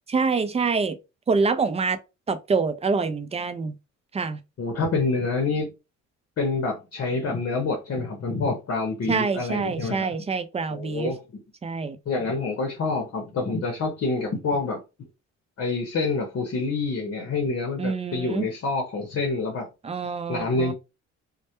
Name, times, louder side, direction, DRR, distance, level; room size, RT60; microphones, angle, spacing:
voice 1, 0.1-1.0 1.3-2.0 2.3-3.7 4.1-4.4 9.1-11.1 11.6-12.0 17.8-18.5 19.8-20.7, right 4 dB, 20° right, 0.3 m, -26 dB
voice 2, 4.6-5.7 6.4-10.1 10.7-11.2 12.1-14.8 15.6-19.7 20.3-20.7, left 3 dB, 50° left, 0.8 m, -27 dB
2.1 x 2.1 x 2.8 m
cardioid pair, 90°, 30 cm